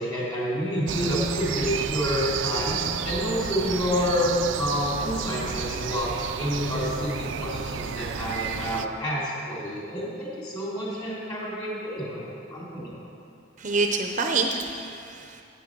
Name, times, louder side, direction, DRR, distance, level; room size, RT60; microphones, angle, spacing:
voice 1, 0.0-13.0, equal, 25° left, -6 dB, 3.5 m, -28 dB
sound 1, 0.9-8.9, right 7 dB, 80° right, 0.5 m, -31 dB
voice 2, 13.6-15.4, right 3 dB, 40° right, 4 dB, 0.7 m, -27 dB
9.9 x 9.2 x 7.5 m, 2.5 s
head